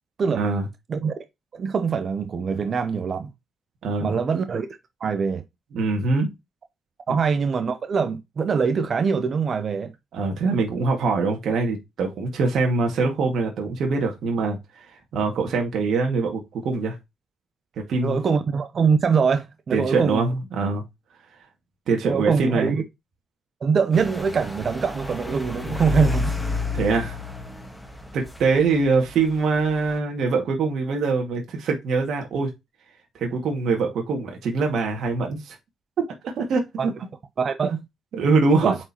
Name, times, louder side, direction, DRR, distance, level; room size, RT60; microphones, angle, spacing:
voice 1, 0.4-0.7 3.8-4.2 5.7-6.3 7.1-7.2 10.1-17.0 17.9-18.2 19.7-20.8 21.9-22.7 26.7-27.2 28.1-32.5 33.2-35.6 36.0-36.9 38.1-38.7, right 4 dB, 70° right, 2.1 m, -23 dB
voice 2, 1.5-3.3 4.0-4.7 5.0-5.4 7.1-9.9 18.0-20.3 22.0-22.8 23.6-26.3 36.8-36.9 37.4-37.8 38.6-38.8, right 5 dB, 45° right, 0.8 m, -23 dB
sound 1, 23.9-30.0, left 3 dB, 5° left, 1.5 m, -31 dB
7.4 x 4.7 x 3.0 m
cardioid pair, 90°, 0 cm